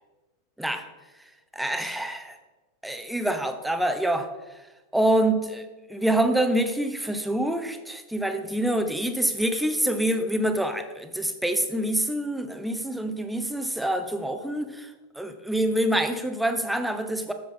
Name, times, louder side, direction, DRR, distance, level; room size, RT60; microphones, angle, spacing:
voice 1, 1.5-2.4 2.8-4.3 4.9-14.9 15.2-17.3, right 1 dB, 5° right, 7 dB, 0.7 m, -26 dB
7.4 x 7.1 x 3.8 m, 1.2 s
figure-of-eight pair, 90°, 0 cm